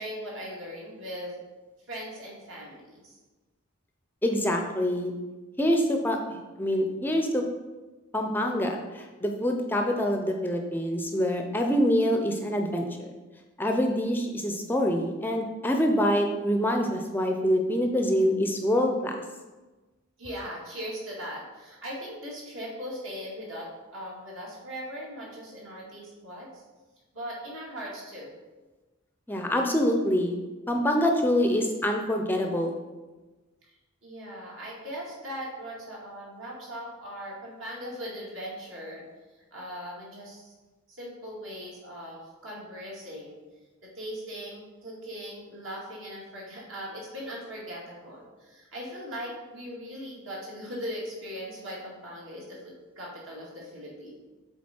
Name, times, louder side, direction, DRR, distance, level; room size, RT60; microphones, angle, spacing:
voice 1, 0.0-1.3 1.9-3.2 20.2-26.6 27.1-28.3 34.0-39.0 39.3-40.5 40.9-43.4 43.8-54.2, equal, 70° right, -4 dB, 2.2 m, -39 dB
voice 2, 4.2-5.1 5.6-7.4 8.1-13.1 13.6-19.2 29.3-30.4 30.7-32.7, equal, 10° left, 3 dB, 0.5 m, -25 dB
7.4 x 4.0 x 4.4 m, 1.2 s
head